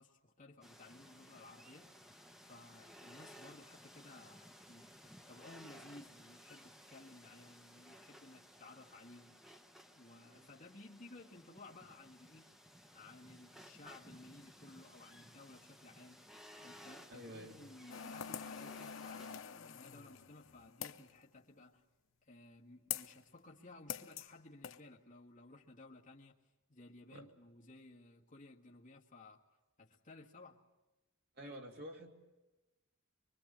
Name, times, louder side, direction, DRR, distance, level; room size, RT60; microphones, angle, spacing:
voice 1, 0.0-9.4 10.0-12.5 12.9-21.8 22.2-26.4 26.7-29.4 29.8-30.6 31.4-31.6, left 2 dB, 40° left, 1.7 m, -57 dB
sound 1, 0.6-19.4, equal, ahead, 1.0 m, -58 dB
voice 2, 17.1-17.6 18.4-18.5 27.1-27.3 31.3-32.3, equal, 50° right, 2.9 m, -50 dB
sound 2, 17.9-21.1 22.9-23.2 23.9-24.3 24.6-24.8, left 8 dB, 70° left, 0.8 m, -45 dB
24.5 x 24.0 x 8.8 m
head